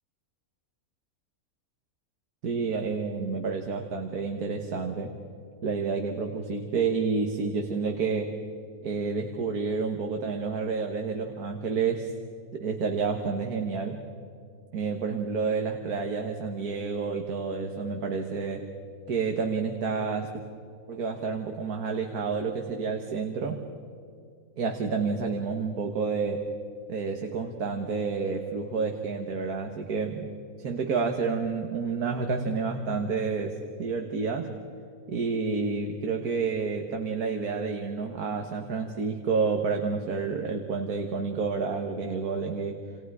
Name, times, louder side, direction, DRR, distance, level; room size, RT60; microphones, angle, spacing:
voice 1, 2.4-5.1 5.6-8.3 8.8-12.1 12.5-14.0 14.7-18.6 19.1-20.3 20.9-23.6 24.6-26.5 26.9-30.3 30.6-34.5 35.1-42.8, right 5 dB, 80° right, 3 dB, 1.9 m, -29 dB
29.0 x 28.0 x 4.9 m, 2.3 s
omnidirectional pair, 1.6 m